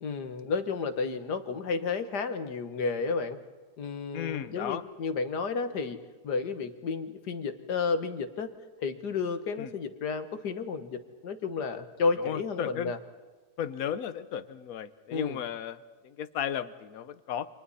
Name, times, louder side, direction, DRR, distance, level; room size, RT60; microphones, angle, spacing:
voice 1, 0.0-3.4 3.8-6.0 6.2-8.5 8.8-13.0 15.1-15.4, left 4 dB, 85° left, 9 dB, 2.0 m, -32 dB
voice 2, 4.1-4.8 9.6-9.7 12.2-12.9 13.6-17.5, left 9 dB, 65° left, 13 dB, 1.3 m, -35 dB
30.0 x 27.0 x 4.2 m, 1.3 s
omnidirectional pair, 1.7 m